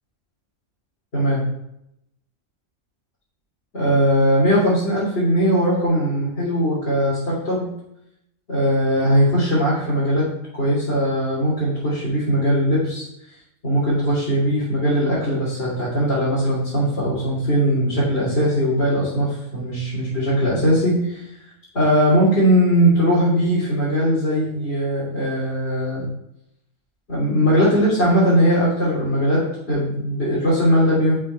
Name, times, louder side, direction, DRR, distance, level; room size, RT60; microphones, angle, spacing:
voice 1, 3.7-7.7 8.5-10.3 10.6-13.1 13.6-21.2 21.7-26.1 27.1-31.2, equal, 50° left, -9 dB, 3.9 m, -19 dB
10.0 x 6.6 x 4.7 m, 0.79 s
omnidirectional pair, 1.4 m